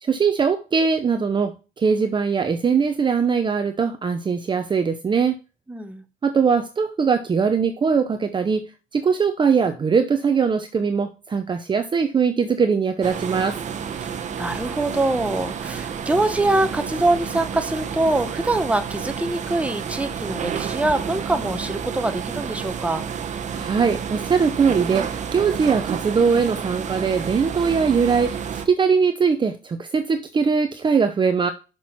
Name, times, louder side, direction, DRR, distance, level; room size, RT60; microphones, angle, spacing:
voice 1, 0.0-5.4 6.2-8.7 8.9-13.6 23.5-31.5, right 5 dB, 30° right, 0.8 m, -21 dB
voice 2, 5.7-6.0 14.0-23.0, right 2 dB, 10° right, 1.1 m, -24 dB
sound 1, 13.0-28.7, right 7 dB, 45° right, 1.1 m, -30 dB
6.2 x 6.1 x 4.1 m
cardioid pair, 110°, 17 cm